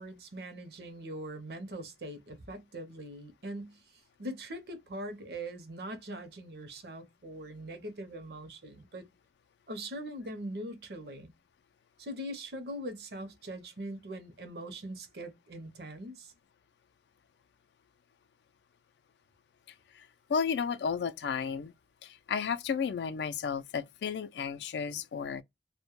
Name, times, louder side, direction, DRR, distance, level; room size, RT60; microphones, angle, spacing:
voice 1, 0.0-3.8 4.2-9.1 9.7-11.3 12.0-16.3, right 1 dB, 60° right, 0.6 m, -42 dB
voice 2, 19.9-21.7 22.0-25.4, left 6 dB, 70° left, 0.3 m, -33 dB
2.1 x 2.1 x 2.9 m
head